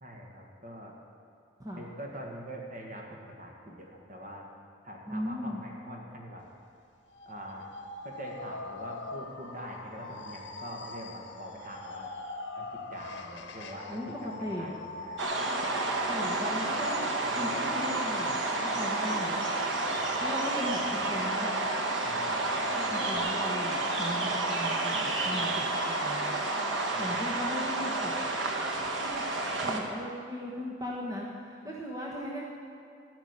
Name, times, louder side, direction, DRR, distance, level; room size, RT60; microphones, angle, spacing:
voice 1, 0.0-0.9 1.8-4.4 4.8-6.4 7.3-7.7 8.0-12.1 12.6-15.2 19.9-20.1 22.0-23.1 25.2-25.4 26.9-27.2, equal, 45° right, -1 dB, 2.1 m, -44 dB
voice 2, 5.1-5.6 13.9-14.1 14.4-14.7 16.0-17.1 17.4-19.4 20.2-21.5 22.7-26.3 27.0-28.4 28.6-32.4, equal, 20° right, -4 dB, 1.3 m, -38 dB
sound 1, 7.1-23.2, left 2 dB, 70° left, 1.2 m, -43 dB
sound 2, 15.2-29.8, right 2 dB, 90° right, 1.4 m, -30 dB
15.0 x 6.0 x 9.9 m, 2.4 s
head